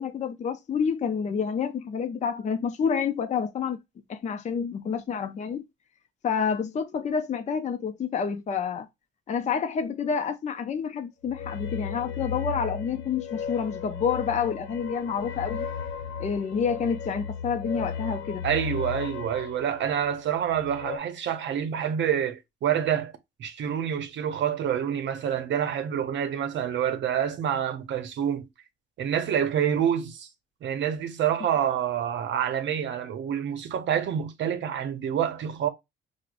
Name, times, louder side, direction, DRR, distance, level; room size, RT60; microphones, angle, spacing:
voice 1, 0.0-3.8 4.1-5.6 6.2-8.9 9.3-15.7 16.2-18.4, left 6 dB, 35° left, 0.5 m, -28 dB
sound 1, 11.2-21.0, left 6 dB, 70° left, 0.7 m, -35 dB
voice 2, 18.4-23.1 23.4-28.5 29.0-30.3 30.6-35.7, right 9 dB, 65° right, 0.7 m, -27 dB
4.7 x 2.1 x 2.5 m
cardioid pair, 90°, 20 cm